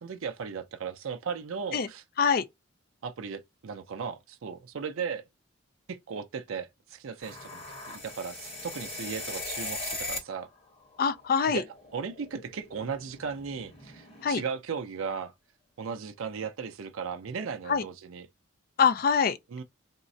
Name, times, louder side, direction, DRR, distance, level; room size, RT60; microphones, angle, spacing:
voice 1, 0.0-2.0 3.0-5.3 5.9-10.5 11.5-11.6 11.9-15.3 15.8-18.3 19.5-19.6, right 6 dB, 85° right, 0.5 m, -36 dB
sound 1, 7.2-10.4 10.7-14.5, left 2 dB, 30° left, 0.9 m, -40 dB
voice 2, 11.0-11.6 14.2-14.4 17.7-17.8 18.8-19.4, left 6 dB, 45° left, 0.4 m, -24 dB
3.6 x 2.0 x 2.6 m
head